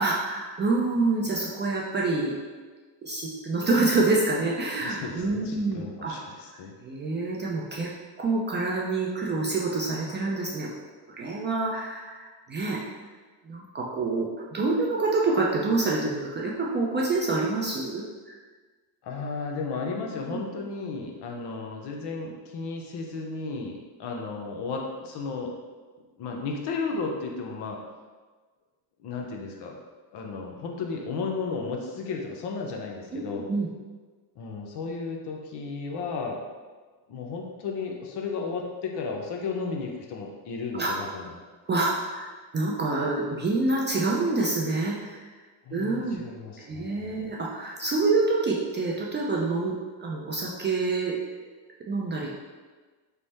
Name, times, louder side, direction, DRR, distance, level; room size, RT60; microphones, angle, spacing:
voice 1, 0.0-2.3 3.0-6.2 6.5-7.9 8.2-10.7 11.2-12.8 13.4-18.4 20.3-20.4 33.1-33.7 40.7-40.9 41.7-45.2 45.7-46.2 46.7-51.1 51.9-52.3, right 3 dB, 25° right, -3 dB, 0.4 m, -27 dB
voice 2, 4.8-6.7 19.0-25.5 26.2-27.8 29.0-29.8 30.1-33.5 34.4-36.4 37.1-41.4 45.6-47.3, left 4 dB, 55° left, 1 dB, 0.7 m, -34 dB
3.3 x 2.1 x 4.1 m, 1.4 s
cardioid pair, 110°, 47 cm